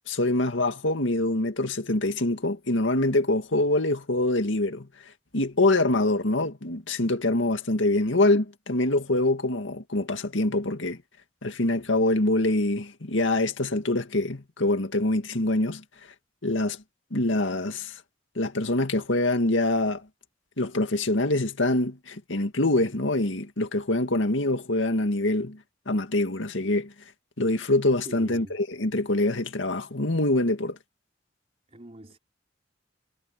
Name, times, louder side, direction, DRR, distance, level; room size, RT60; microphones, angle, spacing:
voice 1, 0.1-4.9 5.3-11.0 11.4-15.8 16.4-16.8 17.1-17.9 18.4-20.0 20.6-25.6 25.9-26.9 27.4-30.8, left 2 dB, 85° left, 2.1 m, -25 dB
voice 2, 28.0-28.6 31.7-32.2, right 1 dB, 35° right, 4.3 m, -44 dB
head